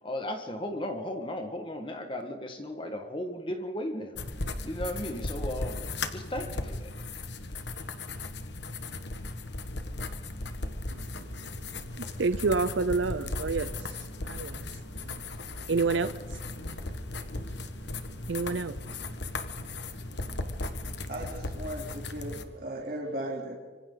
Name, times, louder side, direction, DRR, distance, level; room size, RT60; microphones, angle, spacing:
voice 1, 0.0-4.2 4.6-5.8 6.1-6.9, left 1 dB, 25° left, 1.8 m, -35 dB
sound 1, 4.2-22.4, left 2 dB, 65° left, 1.6 m, -37 dB
voice 2, 10.9-16.4 17.6-17.7 18.2-19.1 19.7-19.8, right 4 dB, 75° right, 0.7 m, -31 dB
voice 3, 21.1-23.5, right 1 dB, 50° right, 3.4 m, -37 dB
25.5 x 25.5 x 4.0 m
head